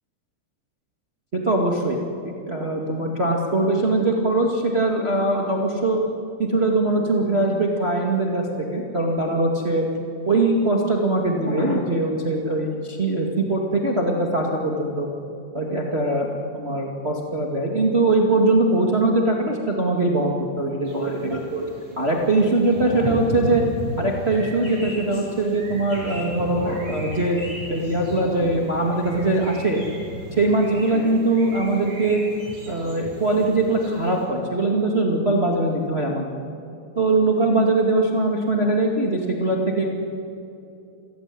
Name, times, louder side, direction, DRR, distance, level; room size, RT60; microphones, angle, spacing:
voice 1, 1.3-2.0 2.5-6.0 6.4-9.8 10.2-15.1 15.5-16.3 16.5-21.7 22.0-23.6 24.0-27.4 27.7-29.8 30.4-32.2 32.6-36.2 36.9-39.9, right 2 dB, 65° right, 0 dB, 0.6 m, -21 dB
sound 1, 20.9-34.2, equal, 30° right, 8.0 m, -36 dB
28.5 x 16.0 x 9.9 m, 2.7 s
omnidirectional pair, 5.3 m